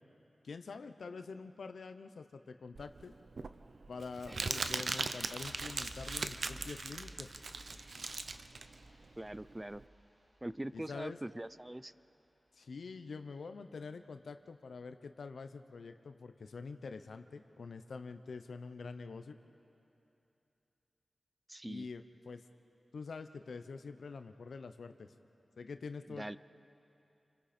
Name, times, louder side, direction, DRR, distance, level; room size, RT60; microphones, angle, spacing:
voice 1, 0.4-3.1 3.9-7.3 10.7-11.2 12.5-19.4 21.6-22.4 22.9-25.1 25.6-26.4, left 4 dB, 85° left, 9 dB, 0.9 m, -46 dB
Crumpling crinkling, 2.8-9.8, right 3 dB, 70° right, 0.8 m, -39 dB
sound 1, 5.4-11.9 12.1-12.3, equal, 50° right, 4.6 m, -56 dB
voice 2, 9.2-9.8 10.4-11.9 21.5-21.9 26.1-26.4, right 1 dB, 20° right, 16 dB, 0.5 m, -42 dB
28.5 x 26.0 x 4.4 m, 2.9 s
cardioid pair, 45°, 0 cm